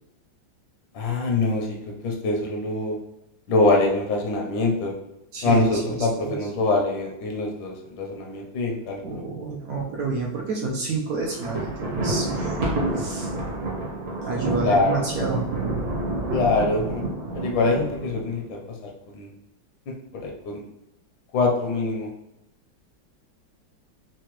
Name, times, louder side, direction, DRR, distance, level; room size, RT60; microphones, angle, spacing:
voice 1, 0.9-1.8 2.0-3.0 3.5-4.9 5.4-9.2 14.6-15.1 16.3-17.0 17.3-18.6 19.1-19.3 20.1-20.6 21.3-22.1, left 3 dB, 80° left, 0 dB, 1.4 m, -24 dB
voice 2, 5.3-6.4 9.0-12.6 13.0-13.3 14.2-15.4, right 3 dB, 75° right, -1 dB, 0.8 m, -29 dB
Thunder, 11.2-18.5, right 2 dB, 55° right, 1.2 m, -28 dB
4.7 x 2.1 x 3.0 m, 0.89 s
omnidirectional pair, 2.0 m